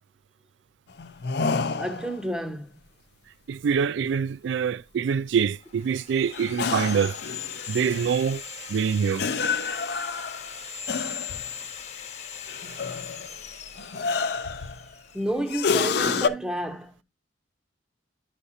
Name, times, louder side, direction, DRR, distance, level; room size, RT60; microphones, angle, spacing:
sound 1, 1.0-2.2 6.3-8.2 9.2-11.5 12.5-13.3 13.8-14.9 15.5-16.3, left 5 dB, 55° left, 0.5 m, -29 dB
voice 1, 1.8-2.7 15.1-17.0, right 1 dB, 5° right, 0.7 m, -30 dB
voice 2, 3.5-7.1 7.7-8.4 8.7-9.2, right 7 dB, 70° right, 0.3 m, -25 dB
Sawing, 5.6-15.5, left 7 dB, 35° left, 0.9 m, -39 dB
11.0 x 5.0 x 2.7 m
head